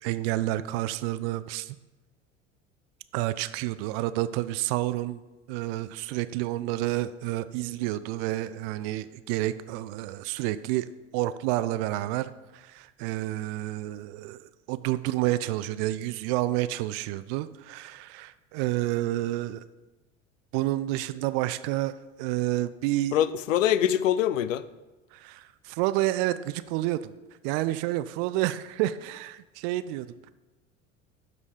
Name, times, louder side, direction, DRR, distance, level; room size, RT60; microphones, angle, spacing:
voice 1, 0.0-1.8 3.1-5.2 5.5-10.9 11.1-19.6 20.5-23.2 25.1-27.1 27.4-30.3, right 16 dB, 50° right, 14 dB, 0.5 m, -29 dB
voice 2, 23.1-24.6, left 11 dB, 80° left, 16 dB, 0.5 m, -24 dB
12.0 x 4.1 x 5.0 m, 1.1 s
figure-of-eight pair, 75°, 38 cm